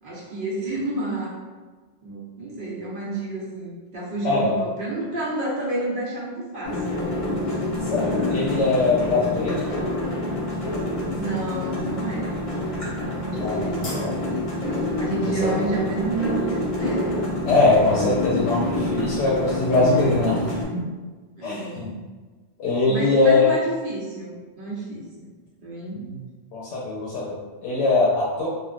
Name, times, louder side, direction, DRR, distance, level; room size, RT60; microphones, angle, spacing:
voice 1, 0.0-1.3 2.0-7.2 11.1-12.3 13.0-13.9 15.0-17.2 18.6-18.9 21.4-22.0 22.9-25.3 25.6-26.0, right 2 dB, 55° right, -6 dB, 0.9 m, -30 dB
voice 2, 4.2-4.5 7.8-9.7 13.4-14.1 17.5-20.4 20.7-20.9 21.4-21.9 22.6-23.6 26.0-26.2 26.5-27.3 27.6-28.5, left 3 dB, 80° left, -5 dB, 0.9 m, -21 dB
sound 1, 6.6-20.6, left 2 dB, 35° left, 0.7 m, -27 dB
3.1 x 2.2 x 2.4 m, 1.3 s
omnidirectional pair, 1.2 m